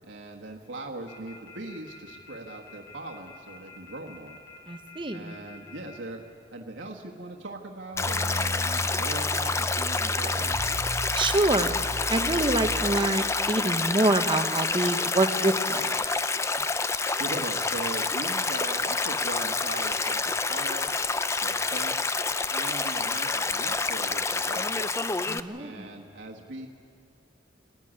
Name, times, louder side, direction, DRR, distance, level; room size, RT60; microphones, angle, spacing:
voice 1, 0.0-4.4 5.1-6.2 6.5-10.6 16.6-20.9 21.4-22.1 22.5-26.7, right 2 dB, 75° right, 1 dB, 1.5 m, -40 dB
sound 1, 1.1-6.0, left 4 dB, 75° left, 3.8 m, -48 dB
voice 2, 4.7-5.3 11.1-11.8 12.1-16.0 25.3-25.9, right 2 dB, 25° right, 8 dB, 0.9 m, -26 dB
sound 2, 7.9-13.4, equal, 60° right, 1.8 m, -35 dB
Stream, 8.0-25.4, left 3 dB, 15° left, 0.5 m, -28 dB
25.5 x 14.0 x 9.9 m, 2.6 s
head